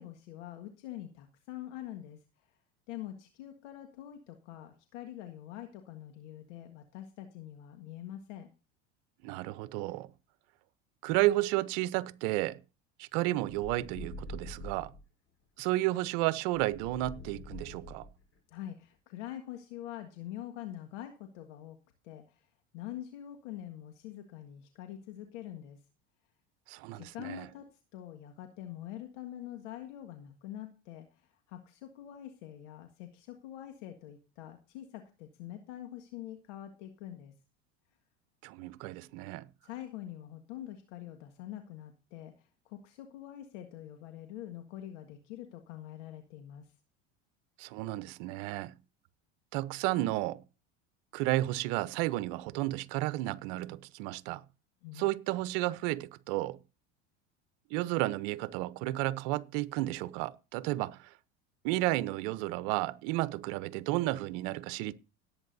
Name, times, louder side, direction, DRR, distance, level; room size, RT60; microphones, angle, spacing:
voice 1, 0.0-2.5 2.9-8.5 18.5-21.8 22.0-22.5 22.7-25.8 26.9-37.3 39.6-46.7 54.8-55.1, left 12 dB, 80° left, 1.8 m, -45 dB
voice 2, 9.2-10.1 11.0-12.6 13.0-14.9 15.6-18.1 26.7-27.5 38.4-39.5 47.6-48.7 49.5-50.4 51.1-54.4 55.0-56.6 57.7-61.1 61.6-64.9, right 17 dB, 65° right, 0.9 m, -32 dB
sound 1, 13.4-15.0 16.5-18.4, left 2 dB, 35° left, 4.0 m, -45 dB
18.0 x 8.8 x 2.7 m
supercardioid pair, 100°, 36 cm